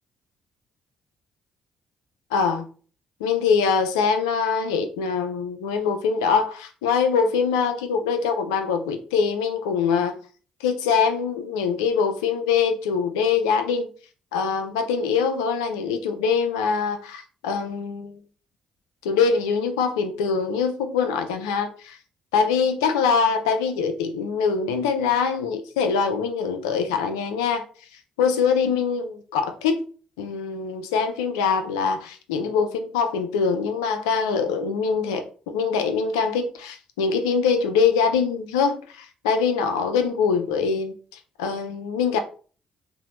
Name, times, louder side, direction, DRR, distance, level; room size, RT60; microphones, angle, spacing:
voice 1, 2.3-2.7 3.2-10.2 10.6-13.9 14.3-18.2 19.0-22.0 22.3-27.6 28.2-29.8 30.2-42.2, left 5 dB, 90° left, 7 dB, 0.3 m, -23 dB
2.9 x 2.0 x 2.8 m, 0.40 s
hypercardioid pair, 45°, 3 cm